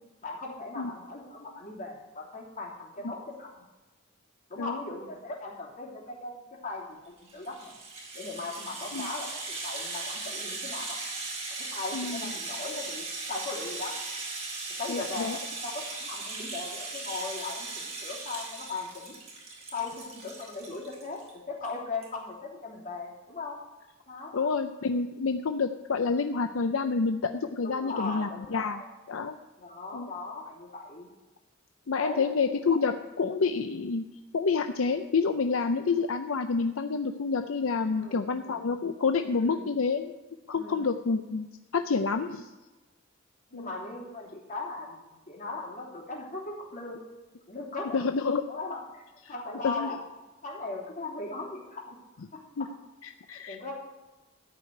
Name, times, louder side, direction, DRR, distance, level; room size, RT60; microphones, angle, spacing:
voice 1, 0.2-3.6 4.5-7.7 8.1-11.0 11.6-14.0 14.8-19.2 19.7-21.2 21.5-23.6 24.1-24.5 27.6-28.8 29.6-31.1 31.9-32.8 37.9-38.6 39.4-39.7 40.5-40.9 43.5-47.0 47.5-48.0 48.5-50.0 50.4-52.0 52.3-52.4 53.3-53.7, left 3 dB, 40° left, -3 dB, 3.1 m, -38 dB
Rattle (instrument), 7.2-21.3 21.6-21.7 22.0-22.1, right 3 dB, 30° right, 3.7 m, -38 dB
voice 2, 11.9-12.3 14.9-15.4 24.3-28.8 29.1-29.4 29.9-30.1 31.9-34.0 34.3-40.1 40.5-42.5 43.5-43.7 47.9-48.4 49.3-49.4 49.6-49.9 52.6-52.7 53.0-53.6, left 4 dB, 70° left, 7 dB, 0.6 m, -28 dB
14.0 x 4.9 x 9.2 m, 1.2 s
head